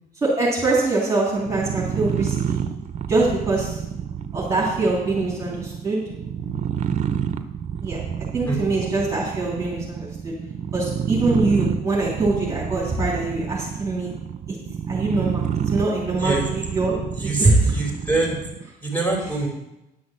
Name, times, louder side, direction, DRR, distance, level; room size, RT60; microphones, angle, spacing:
voice 1, 0.2-2.7 3.1-3.8 4.3-6.0 7.8-8.0 8.3-10.3 10.7-14.1 14.9-16.9 17.2-17.6, right 2 dB, 20° right, -5 dB, 3.1 m, -23 dB
sound 1, 1.4-18.7, right 8 dB, 45° right, 0.7 m, -29 dB
voice 2, 16.2-16.5 17.1-18.4 18.8-19.5, right 2 dB, 10° left, -3 dB, 4.7 m, -24 dB
10.5 x 6.2 x 7.4 m, 0.91 s
cardioid pair, 110°, 17 cm